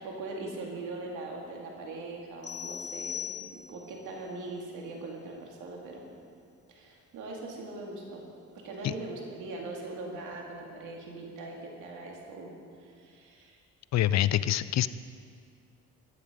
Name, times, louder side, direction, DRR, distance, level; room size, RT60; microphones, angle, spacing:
voice 1, 0.0-3.3 3.7-6.0 6.7-8.2 8.6-12.5 12.8-13.6, right 2 dB, 90° right, 0 dB, 2.3 m, -41 dB
sound 1, 2.4-4.0, left 8 dB, 35° left, 1.0 m, -39 dB
voice 2, 13.9-14.9, left 12 dB, 60° left, 16 dB, 0.5 m, -25 dB
14.5 x 9.6 x 5.1 m, 2.3 s
cardioid pair, 90°, 30 cm